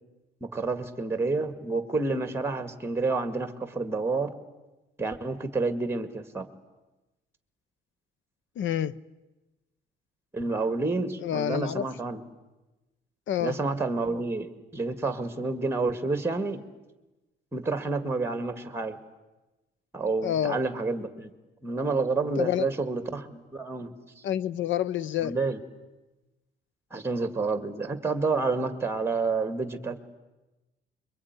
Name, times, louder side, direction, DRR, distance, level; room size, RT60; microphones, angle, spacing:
voice 1, 0.4-4.3 5.0-6.5 10.3-12.2 13.4-16.6 17.5-19.0 19.9-21.3 21.6-23.9 25.2-25.6 26.9-30.0, right 3 dB, 10° right, 2.0 m, -29 dB
voice 2, 8.6-9.0 11.2-11.8 13.3-13.6 20.2-20.6 22.4-22.7 24.2-25.4, left 10 dB, 70° left, 0.9 m, -28 dB
26.0 x 23.0 x 9.6 m
cardioid pair, 125°, 20 cm